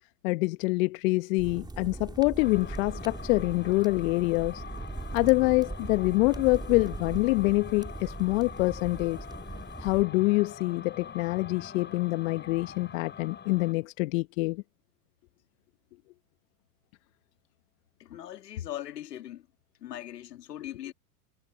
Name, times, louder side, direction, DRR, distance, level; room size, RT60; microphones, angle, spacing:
voice 1, 0.2-4.6 5.1-9.2 9.8-14.6, left 23 dB, 55° left, 1.4 m, -26 dB
sound 1, 1.4-10.0, right 3 dB, 10° right, 4.9 m, -40 dB
sound 2, 2.4-13.8, left 7 dB, 20° left, 7.9 m, -45 dB
voice 2, 18.0-19.4 19.8-20.9, left 12 dB, 80° left, 2.6 m, -39 dB
hypercardioid pair, 105°, 48 cm